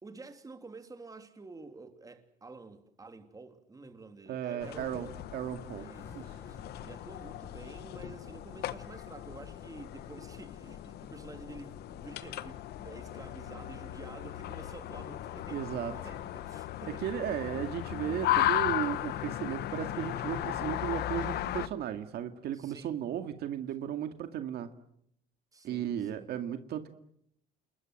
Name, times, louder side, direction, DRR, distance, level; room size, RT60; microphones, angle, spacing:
voice 1, 0.0-5.2 5.7-17.0 22.5-22.9 25.5-26.3, right 3 dB, 20° right, 3.1 m, -49 dB
voice 2, 4.3-5.9 6.1-6.2 15.5-15.9 16.9-24.7 25.6-26.9, right 10 dB, 70° right, 2.1 m, -35 dB
sound 1, 4.6-21.7, left 13 dB, 75° left, 1.3 m, -36 dB
sound 2, 5.8-10.2, left 2 dB, 15° left, 6.5 m, -56 dB
29.0 x 21.0 x 7.9 m
cardioid pair, 110°, 17 cm